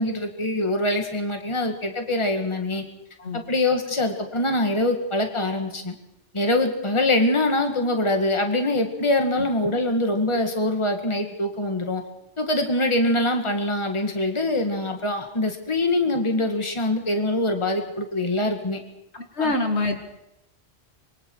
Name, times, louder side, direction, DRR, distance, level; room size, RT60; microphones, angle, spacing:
voice 1, 0.0-2.8 3.3-5.9 6.3-12.0 12.4-18.8 19.4-19.5, left 1 dB, 25° left, 4 dB, 2.0 m, -24 dB
voice 2, 19.1-20.0, left 2 dB, 75° left, 5 dB, 2.4 m, -25 dB
25.0 x 23.5 x 4.7 m, 0.87 s
omnidirectional pair, 1.1 m